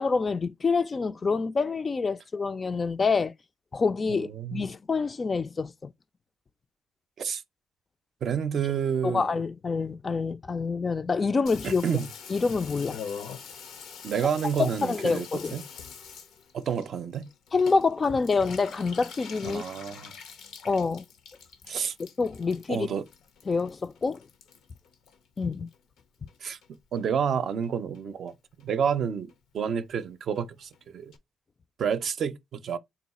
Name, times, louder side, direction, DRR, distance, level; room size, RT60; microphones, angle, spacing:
voice 1, 0.0-3.3 3.7-5.9 9.0-11.8 12.3-13.0 14.6-15.5 17.5-19.6 20.6-21.0 22.2-22.9 23.5-24.2 25.4-25.7, left 4 dB, 35° left, 0.3 m, -27 dB
voice 2, 4.1-4.6 7.2-7.4 8.2-9.3 11.6-12.1 14.0-15.6 16.5-17.3 19.4-20.1 21.7-21.9 22.7-23.0 26.4-26.6 26.9-28.3 28.6-31.1 31.8-32.8, right 7 dB, 60° right, 0.5 m, -29 dB
Water tap faucet / Bathtub (filling or washing), 11.5-26.0 26.3-27.0 27.3-27.4 27.6-27.7 27.9-28.3 28.6-28.7 28.9-29.0 29.3-29.4 29.6-29.7 30.0-30.1 30.4-30.5 30.7-30.8 31.1-31.2, left 6 dB, 80° left, 0.6 m, -45 dB
3.9 x 2.3 x 4.0 m
cardioid pair, 90°, 0 cm